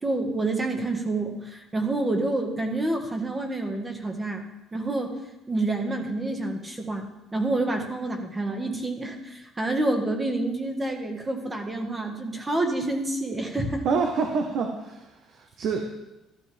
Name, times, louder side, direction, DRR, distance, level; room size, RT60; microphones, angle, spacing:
voice 1, 0.0-4.5 4.7-5.2 5.5-13.8, right 2 dB, 15° right, 3 dB, 1.7 m, -28 dB
voice 2, 13.8-15.8, right 5 dB, 55° right, 3 dB, 1.3 m, -27 dB
14.5 x 13.0 x 3.6 m, 1.0 s
cardioid pair, 135°, 0 cm